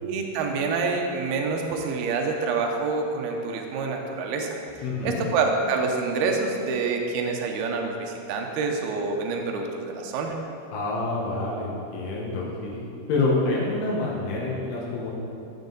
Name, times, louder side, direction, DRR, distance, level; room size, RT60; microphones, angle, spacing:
voice 1, 0.0-10.3, right 4 dB, 80° right, 2 dB, 2.3 m, -27 dB
voice 2, 4.8-5.3 10.7-12.8 13.1-15.1, left 2 dB, 80° left, -4 dB, 3.7 m, -27 dB
12.5 x 7.3 x 4.0 m, 2.7 s
omnidirectional pair, 5.5 m